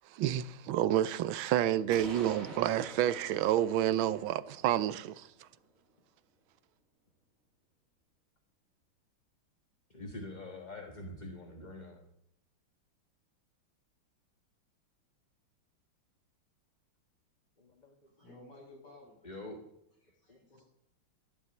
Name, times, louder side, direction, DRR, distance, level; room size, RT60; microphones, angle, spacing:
voice 1, 0.1-5.3, right 12 dB, 75° right, 1.4 m, -29 dB
sound 1, 1.9-5.7, right 2 dB, 40° right, 3.1 m, -48 dB
voice 2, 9.9-12.0 17.6-17.9 19.2-19.6 20.3-20.6, left 2 dB, 25° left, 1.4 m, -45 dB
voice 3, 18.2-19.3 20.0-20.6, left 2 dB, 50° left, 7.1 m, -55 dB
13.0 x 11.0 x 8.1 m
omnidirectional pair, 2.3 m